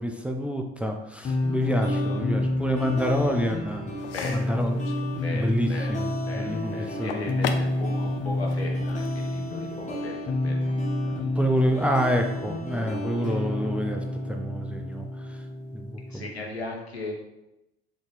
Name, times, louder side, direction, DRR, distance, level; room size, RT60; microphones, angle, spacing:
voice 1, 0.0-3.9 4.3-4.8 5.3-6.1 6.4-7.3 11.0-14.0 14.3-15.4 15.7-16.2, equal, 5° right, 3 dB, 0.4 m, -28 dB
sound 1, 1.2-16.3, left 1 dB, 25° left, 1.3 m, -29 dB
sound 2, 4.0-9.9, left 7 dB, 65° left, 0.5 m, -39 dB
voice 2, 4.1-4.6 5.2-10.8 16.1-17.1, left 2 dB, 90° left, 0 dB, 0.8 m, -37 dB
4.1 x 3.6 x 3.4 m, 0.91 s
figure-of-eight pair, 65°, 31 cm